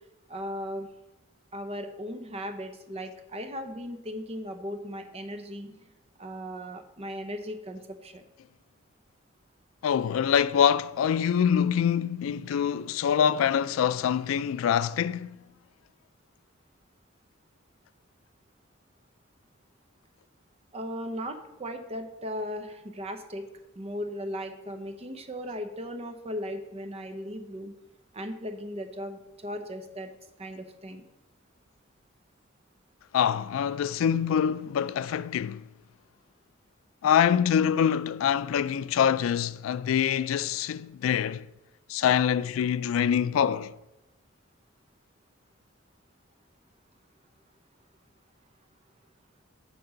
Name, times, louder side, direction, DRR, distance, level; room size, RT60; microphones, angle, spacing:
voice 1, 0.3-0.9 1.5-5.9 6.2-8.2 20.7-23.5 23.8-27.7 28.1-30.1 30.4-31.0, equal, 30° right, 0.7 m, -37 dB
voice 2, 9.8-15.4 33.1-35.6 37.0-41.5 41.9-43.7, left 8 dB, 90° left, 0.3 m, -25 dB
7.1 x 5.3 x 5.1 m
head